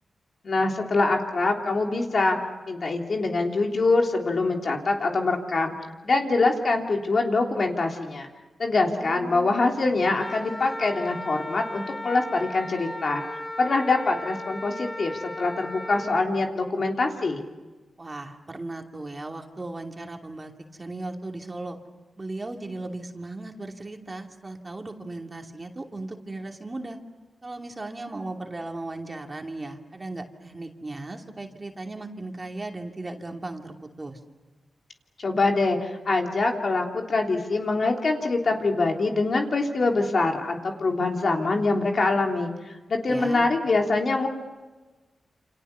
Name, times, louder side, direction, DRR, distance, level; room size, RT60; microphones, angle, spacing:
voice 1, 0.4-2.4 2.7-5.7 6.0-8.3 8.6-13.2 13.6-17.5 35.2-42.5 42.9-44.3, left 3 dB, 55° left, 2 dB, 3.3 m, -24 dB
voice 2, 8.8-9.5 18.0-21.8 22.2-27.0 27.4-34.2 43.1-43.5, right 2 dB, 30° right, 3 dB, 2.7 m, -37 dB
Wind instrument woodwind instrument, 10.2-16.2, left 1 dB, 30° left, 7.5 m, -36 dB
28.5 x 27.5 x 6.9 m, 1.2 s
cardioid pair, 85°, 0 cm